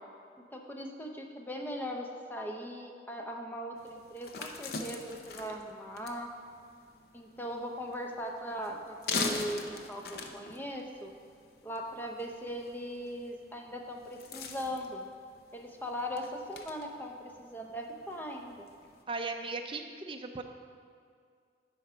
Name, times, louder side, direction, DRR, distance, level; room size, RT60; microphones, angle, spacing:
voice 1, 0.4-6.3 7.1-11.1 11.6-15.1 15.5-18.7, equal, 10° left, 1 dB, 0.6 m, -39 dB
sound 1, 3.8-19.0, left 3 dB, 60° left, 0.7 m, -43 dB
voice 2, 19.1-20.4, right 3 dB, 30° right, 4 dB, 0.5 m, -37 dB
9.6 x 4.7 x 5.6 m, 2.2 s
head